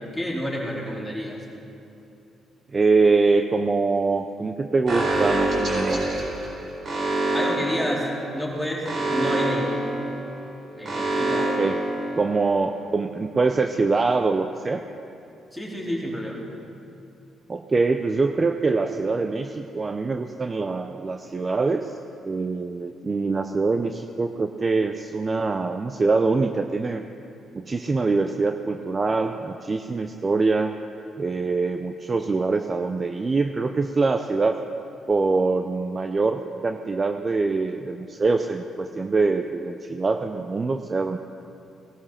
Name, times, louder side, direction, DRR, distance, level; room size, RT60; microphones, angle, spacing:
voice 1, 0.0-1.4 7.3-9.7 10.7-11.5 15.5-16.4, equal, ahead, -4 dB, 4.1 m, -29 dB
voice 2, 2.7-6.3 11.4-11.8 12.1-14.8 17.5-22.0 22.2-27.0 27.5-30.8 31.2-34.6 35.1-41.2, right 3 dB, 30° right, 7 dB, 0.6 m, -24 dB
Alarm, 4.9-12.6, right 2 dB, 55° right, 4.6 m, -26 dB
18.5 x 13.0 x 5.8 m, 2.7 s
cardioid pair, 90°, 0 cm